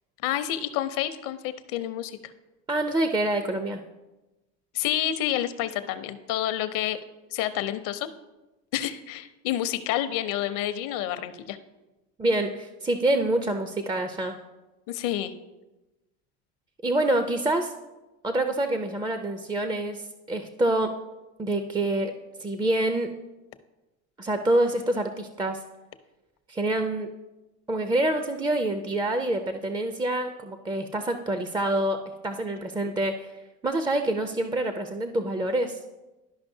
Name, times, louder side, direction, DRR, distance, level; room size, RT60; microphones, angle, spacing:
voice 1, 0.2-2.2 4.7-7.0 7.3-8.1 8.7-11.6 14.9-15.3, left 12 dB, 65° left, 11 dB, 0.7 m, -29 dB
voice 2, 2.7-3.8 12.2-14.4 16.8-17.7 18.2-21.1 21.4-22.1 22.4-23.2 24.2-25.6 26.5-27.1 27.7-33.3 33.6-35.8, right 1 dB, 15° right, 7 dB, 0.4 m, -26 dB
12.0 x 5.2 x 2.7 m, 1.1 s
supercardioid pair, 100°, 34 cm